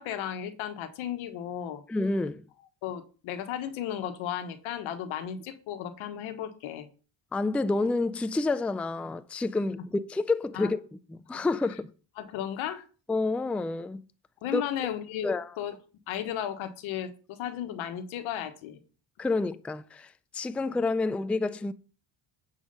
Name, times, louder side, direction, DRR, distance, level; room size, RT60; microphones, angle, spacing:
voice 1, 0.0-1.8 2.8-6.9 10.5-10.7 11.3-11.5 12.2-12.8 14.4-15.3 15.6-15.7 16.1-18.8, left 10 dB, 85° left, 1.4 m, -34 dB
voice 2, 1.9-2.4 7.3-11.9 13.1-14.0 14.5-14.6 15.2-15.5 19.2-21.7, left 3 dB, 5° left, 0.4 m, -29 dB
9.7 x 4.9 x 5.5 m
cardioid pair, 85°, 47 cm